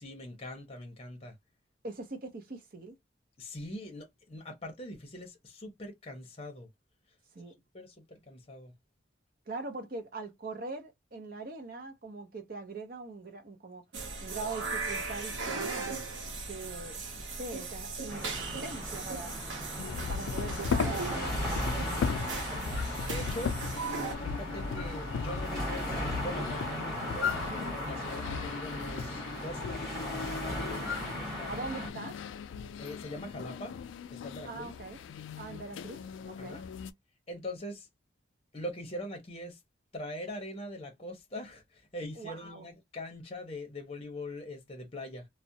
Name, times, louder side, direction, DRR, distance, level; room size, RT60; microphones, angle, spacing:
voice 1, 0.0-1.4 3.4-6.7 7.7-8.7 21.7-23.6 23.9-29.8 30.1-31.6 32.8-33.8 34.1-34.7 36.4-36.7 37.3-37.9 38.5-39.6 39.9-45.3, left 1 dB, 30° left, 0.7 m, -43 dB
voice 2, 1.8-3.0 7.3-7.5 9.5-13.8 14.2-16.0 16.5-19.4 20.1-21.6 31.4-32.2 34.4-35.0 35.4-36.6 42.2-42.7, right 3 dB, 50° right, 0.6 m, -42 dB
sound 1, 13.9-24.1, right 4 dB, 85° right, 0.7 m, -38 dB
sound 2, 18.1-31.9, equal, ahead, 1.2 m, -37 dB
sound 3, 19.8-36.9, left 6 dB, 80° left, 0.3 m, -37 dB
2.4 x 2.0 x 2.6 m
head